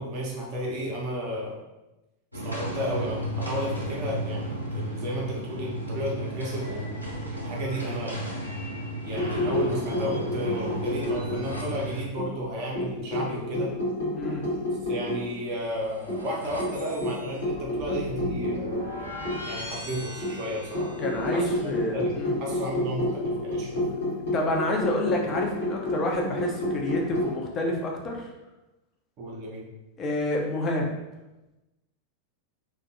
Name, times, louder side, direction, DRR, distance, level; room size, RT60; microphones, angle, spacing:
voice 1, 0.0-1.6 2.4-7.0 7.3-8.2 9.0-13.7 14.8-18.7 19.4-21.0 21.3-22.1 22.4-23.8 29.2-29.7, equal, 35° right, -3 dB, 0.5 m, -33 dB
sound 1, 2.3-12.0, right 1 dB, 85° right, 0.5 m, -33 dB
sound 2, 7.0-7.4 9.3-11.7 15.2-21.6, left 1 dB, 90° left, 0.4 m, -40 dB
sound 3, 9.1-11.8 12.2-15.3 15.6-15.7 16.1-19.6 20.2-27.3, left 1 dB, 60° left, 1.1 m, -30 dB
voice 2, 14.1-14.5 21.0-22.3 24.3-28.3 30.0-30.9, left 1 dB, 30° left, 0 dB, 0.5 m, -28 dB
2.5 x 2.2 x 2.6 m, 1.0 s
figure-of-eight pair, 90°, 0 cm